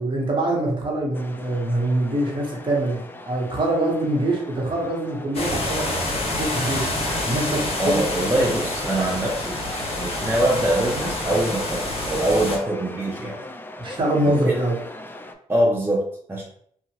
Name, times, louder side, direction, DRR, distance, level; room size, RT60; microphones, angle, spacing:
voice 1, 0.0-5.9 6.3-8.0 13.8-14.8, right 1 dB, 35° right, -2 dB, 1.2 m, -24 dB
sound 1, 1.1-15.3, left 1 dB, 15° left, 0.4 m, -38 dB
sound 2, 5.3-12.6, left 1 dB, 45° left, 1.2 m, -27 dB
voice 2, 7.8-9.6 10.0-13.4 14.2-14.5 15.5-16.4, right 1 dB, 15° right, -4 dB, 0.7 m, -23 dB
2.8 x 2.4 x 2.9 m, 0.64 s
cardioid pair, 70°, 14 cm